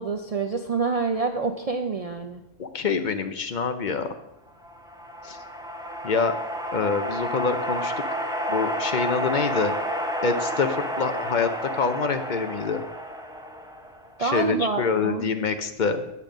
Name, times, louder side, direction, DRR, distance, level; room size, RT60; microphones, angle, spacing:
voice 1, 0.0-2.4 14.2-15.3, right 4 dB, 65° right, 4 dB, 0.3 m, -27 dB
voice 2, 2.6-4.1 5.2-5.4 6.0-6.4 6.7-7.9 8.5-9.7 10.2-12.8 14.2-16.0, left 5 dB, 50° left, 8 dB, 0.6 m, -26 dB
sound 1, 4.6-14.2, equal, 5° right, 0.5 m, -31 dB
8.4 x 5.2 x 7.3 m, 0.91 s
omnidirectional pair, 1.3 m